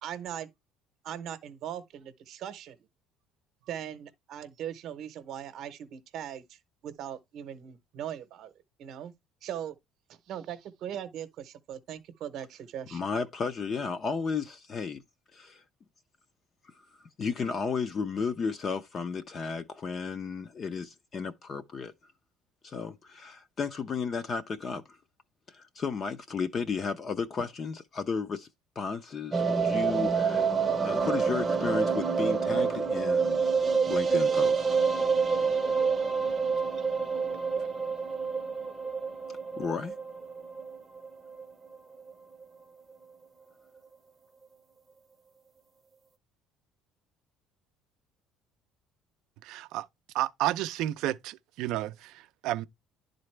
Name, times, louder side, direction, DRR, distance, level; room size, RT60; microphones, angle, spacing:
voice 1, 0.0-0.5 1.0-2.8 3.6-8.5 8.8-9.1 9.4-9.7 10.1-13.0, right 10 dB, 50° right, 0.8 m, -40 dB
voice 2, 12.9-15.0 15.3-15.6 17.2-21.9 22.6-24.8 25.5-28.5 28.8-30.5 30.8-33.4 33.8-34.7 39.6-39.9, left 5 dB, 30° left, 0.5 m, -33 dB
sound 1, 29.3-41.5 41.7-41.8 42.1-42.2 42.4-42.5, right 5 dB, 15° right, 0.7 m, -27 dB
voice 3, 49.4-49.9 50.1-52.7, right 15 dB, 65° right, 0.4 m, -31 dB
10.5 x 3.9 x 3.2 m
cardioid pair, 165°, 0 cm